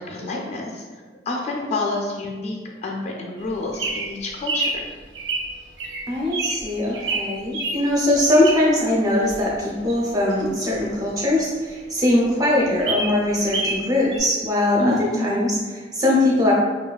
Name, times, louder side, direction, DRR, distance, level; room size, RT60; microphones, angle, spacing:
voice 1, 0.1-4.7 14.8-15.4, left 2 dB, 35° left, -1 dB, 0.3 m, -28 dB
Bird vocalization bird call bird song, 3.4-8.9 9.3-11.4 11.8-11.9 12.2-12.3 12.6-13.8 14.1-14.2, right 3 dB, 85° right, 0.6 m, -28 dB
voice 2, 6.1-16.5, left 1 dB, 20° right, -3 dB, 0.5 m, -21 dB
3.0 x 2.2 x 2.2 m, 1.4 s
head